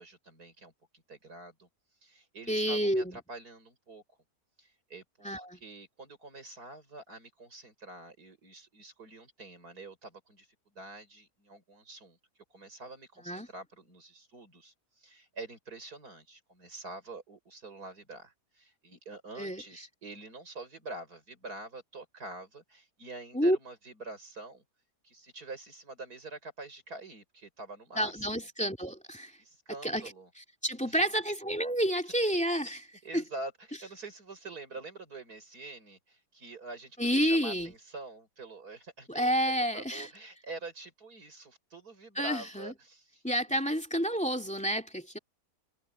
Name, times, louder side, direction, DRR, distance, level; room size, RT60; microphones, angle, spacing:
voice 1, 0.0-1.7 2.0-4.0 4.6-12.2 12.5-24.6 25.0-28.5 29.4-30.3 30.7-31.2 32.1-32.2 32.6-43.6, right 2 dB, 85° right, 6.1 m, -46 dB
voice 2, 2.5-3.2 5.2-5.6 13.3-13.5 19.4-19.6 23.3-23.6 28.0-29.3 29.8-30.0 30.6-32.8 33.1-33.2 37.0-37.7 39.1-40.1 42.2-42.7 43.2-45.2, equal, 5° left, 2.7 m, -29 dB
omnidirectional pair, 1.6 m